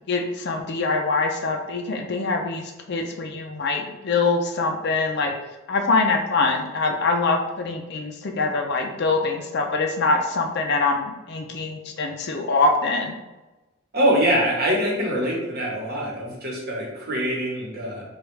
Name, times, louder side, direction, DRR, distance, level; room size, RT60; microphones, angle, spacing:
voice 1, 0.1-5.3 5.7-13.2, left 3 dB, 55° left, 3 dB, 0.5 m, -24 dB
voice 2, 13.9-18.0, right 1 dB, 50° right, -2 dB, 1.1 m, -24 dB
4.8 x 2.3 x 3.1 m, 1.1 s
head